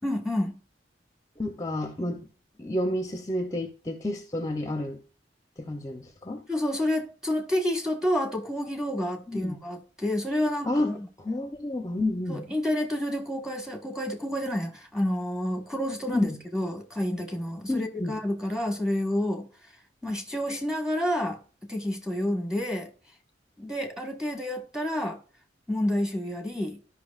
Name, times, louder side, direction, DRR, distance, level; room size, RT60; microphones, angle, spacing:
voice 1, 0.0-0.5 6.5-11.1 12.3-19.5 20.0-21.4 21.7-22.9 23.6-25.2 25.7-26.8, left 1 dB, 5° right, 1.4 m, -29 dB
voice 2, 1.4-2.3 2.6-5.0 5.6-6.4 9.3-9.6 10.6-10.9 11.2-12.5 16.1-16.4 17.7-18.1, left 1 dB, 20° left, 0.8 m, -30 dB
13.0 x 5.7 x 2.4 m
head